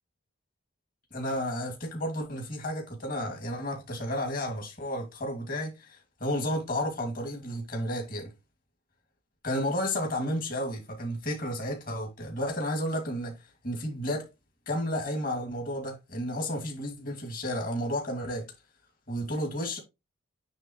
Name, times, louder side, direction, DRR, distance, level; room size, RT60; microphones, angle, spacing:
voice 1, 1.1-8.3 9.4-14.3 14.7-18.5 19.1-19.8, equal, 40° left, 2.4 m, -32 dB
9.2 x 3.7 x 3.0 m
head